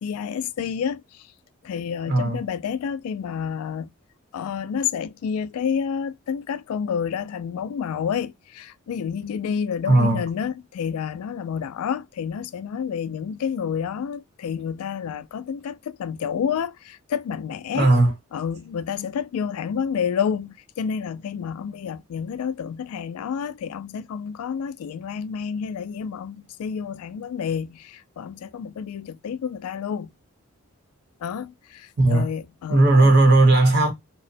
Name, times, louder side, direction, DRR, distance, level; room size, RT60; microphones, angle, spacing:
voice 1, 0.0-1.3 1.6-3.9 4.3-17.9 18.3-30.1 31.2-33.1, left 7 dB, 85° left, 0.3 m, -29 dB
voice 2, 2.1-2.4 9.9-10.2 17.7-18.1 32.0-32.3 32.7-33.9, right 2 dB, 50° right, 0.8 m, -16 dB
2.9 x 2.0 x 2.5 m
head